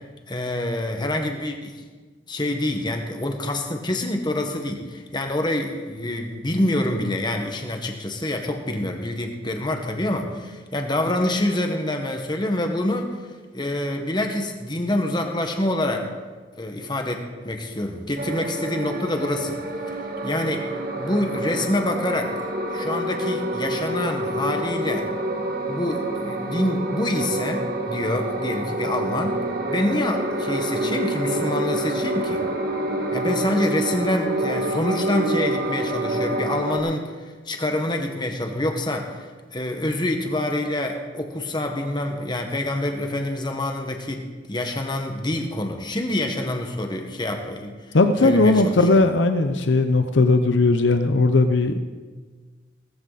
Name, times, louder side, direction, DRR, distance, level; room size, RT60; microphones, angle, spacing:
voice 1, 0.3-1.8 2.3-13.2 13.5-16.1 16.6-19.6 19.9-20.0 20.2-20.7 21.0-22.3 22.7-25.1 25.7-29.4 29.7-32.4 33.1-37.1 37.4-39.3 39.5-48.0 48.2-49.0, left 1 dB, 25° left, 4 dB, 1.5 m, -26 dB
sound 1, 18.2-36.8, right 1 dB, 55° right, 1.8 m, -27 dB
voice 2, 47.9-51.8, left 3 dB, 80° left, 8 dB, 0.8 m, -18 dB
18.0 x 14.0 x 4.2 m, 1.4 s
head